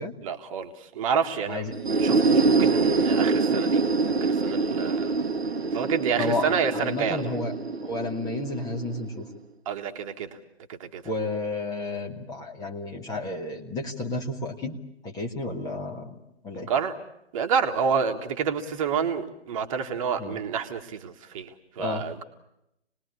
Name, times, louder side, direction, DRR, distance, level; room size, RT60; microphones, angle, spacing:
voice 1, 0.2-3.8 4.2-5.2 5.7-7.3 9.6-10.4 10.7-11.0 16.7-16.9 17.3-22.2, right 6 dB, 30° right, 5 dB, 1.7 m, -29 dB
sound 1, 1.7-9.4, right 4 dB, 65° right, 1.3 m, -25 dB
voice 2, 6.2-7.5 7.8-9.3 11.0-14.8 15.0-16.1 16.4-16.7 20.2-20.4 21.8-22.1, left 2 dB, 10° left, 1 dB, 1.7 m, -31 dB
28.0 x 20.0 x 8.4 m, 0.82 s
figure-of-eight pair, 130°, 34 cm